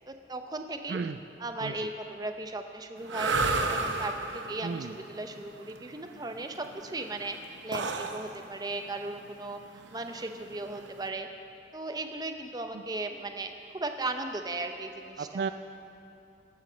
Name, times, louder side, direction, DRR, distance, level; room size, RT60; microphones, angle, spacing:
voice 1, 0.1-1.0 1.4-3.3 3.7-7.4 7.6-9.6 9.9-11.3 11.7-15.4, right 2 dB, 20° right, 6 dB, 0.7 m, -37 dB
sound 1, 3.0-11.1, right 3 dB, 85° right, 0.8 m, -33 dB
voice 2, 4.6-5.0 12.7-12.8 15.2-15.5, right 5 dB, 60° right, 10 dB, 0.3 m, -34 dB
18.0 x 7.2 x 6.2 m, 2.7 s
head